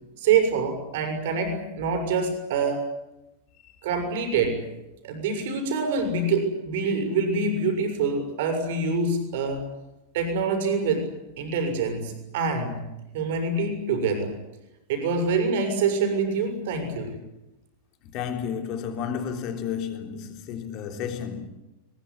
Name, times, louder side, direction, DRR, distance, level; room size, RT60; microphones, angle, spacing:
voice 1, 0.2-2.9 3.8-4.7 5.0-9.7 10.1-11.1 11.4-12.8 13.1-14.4 14.9-17.2, right 4 dB, 55° right, 6.7 m, -25 dB
voice 2, 18.0-21.5, left 7 dB, 40° left, 3.5 m, -32 dB
22.0 x 22.0 x 9.8 m
figure-of-eight pair, 90°, 0 cm